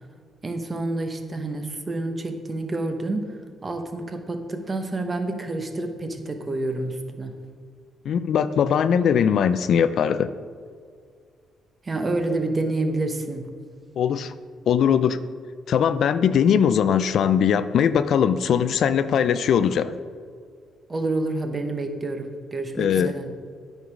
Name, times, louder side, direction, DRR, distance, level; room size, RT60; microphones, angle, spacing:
voice 1, 0.4-7.4 11.8-13.5 20.9-23.3, right 2 dB, 30° right, 6 dB, 0.9 m, -28 dB
voice 2, 8.1-10.3 14.0-14.3 14.7-15.2 15.7-20.0 22.8-23.1, left 8 dB, 65° left, 13 dB, 0.3 m, -20 dB
9.3 x 4.7 x 5.2 m, 2.1 s
cardioid pair, 90°, 0 cm